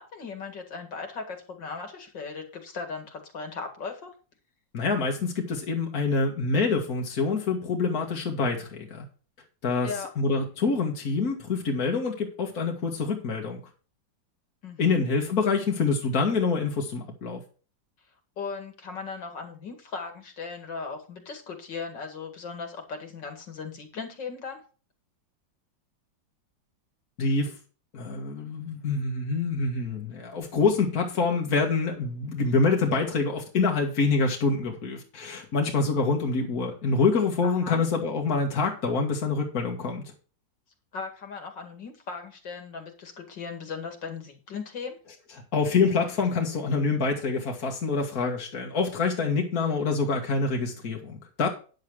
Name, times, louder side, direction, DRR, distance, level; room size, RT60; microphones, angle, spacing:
voice 1, 0.0-4.1 9.8-10.1 14.6-15.0 18.4-24.6 37.4-37.8 40.9-45.0 49.6-49.7, left 5 dB, 70° left, 4 dB, 2.8 m, -37 dB
voice 2, 4.7-9.1 9.6-9.9 10.2-13.6 14.8-17.4 27.2-27.6 27.9-40.0 45.5-51.5, left 4 dB, 50° left, 1 dB, 2.2 m, -26 dB
10.5 x 7.3 x 4.8 m, 0.36 s
omnidirectional pair, 2.0 m